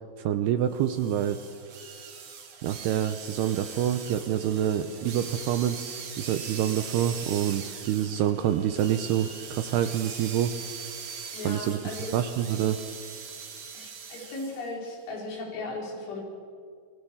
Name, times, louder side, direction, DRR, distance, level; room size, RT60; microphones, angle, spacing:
voice 1, 0.2-1.4 2.6-10.5 11.4-11.8 12.1-12.8, right 10 dB, 75° right, 9 dB, 2.5 m, -27 dB
sound 1, 0.8-14.7, right 6 dB, 45° right, 2.3 m, -41 dB
voice 2, 11.3-12.2 13.7-16.2, left 2 dB, 75° left, -1 dB, 7.3 m, -36 dB
28.0 x 23.5 x 7.2 m, 2.2 s
omnidirectional pair, 5.5 m